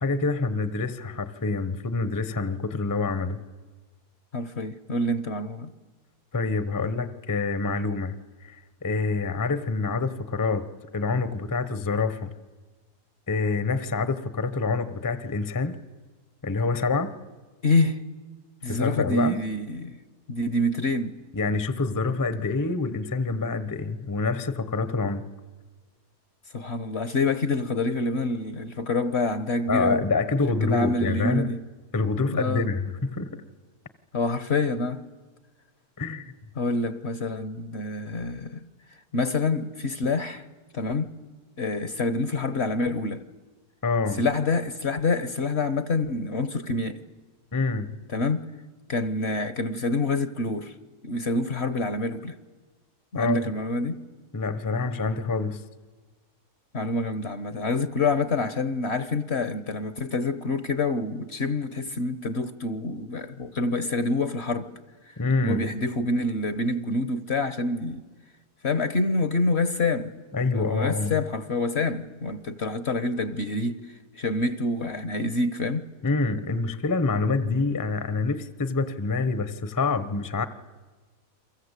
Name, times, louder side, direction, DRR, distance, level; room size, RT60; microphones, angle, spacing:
voice 1, 0.0-3.4 6.3-8.1 8.4-10.7 10.9-12.3 13.3-15.8 16.4-17.1 18.7-19.4 21.3-25.2 29.7-31.5 31.9-33.3 36.0-36.3 43.8-44.2 47.5-47.9 53.1-53.4 54.3-55.6 65.2-65.7 70.3-71.2 76.0-80.5, left 3 dB, 15° left, 0.8 m, -26 dB
voice 2, 4.3-5.7 17.6-18.0 18.6-20.0 20.3-21.1 26.5-30.0 30.6-31.6 32.3-32.7 34.1-35.0 36.6-38.7 39.1-40.4 40.7-41.1 41.6-43.2 44.2-47.0 48.1-48.5 48.9-50.7 51.0-52.4 53.1-54.0 56.7-64.7 65.4-68.0 68.6-70.1 70.5-73.8 74.1-75.9, left 2 dB, 45° left, 1.1 m, -27 dB
30.0 x 23.5 x 8.2 m
omnidirectional pair, 1.7 m